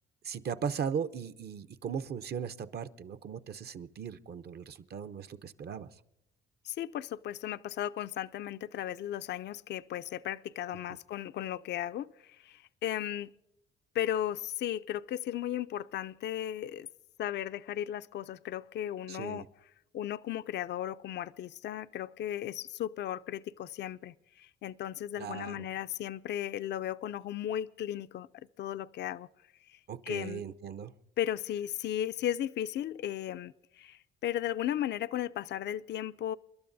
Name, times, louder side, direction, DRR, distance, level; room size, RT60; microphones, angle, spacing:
voice 1, 0.2-5.9 19.1-19.5 25.2-25.6 29.9-30.9, right 7 dB, 55° right, 0.7 m, -38 dB
voice 2, 6.6-13.3 13.9-16.9 17.2-19.5 19.9-28.3 28.6-29.3 29.7-30.4 31.2-36.4, left 11 dB, 60° left, 0.4 m, -36 dB
29.5 x 12.0 x 2.7 m
cardioid pair, 90°, 20 cm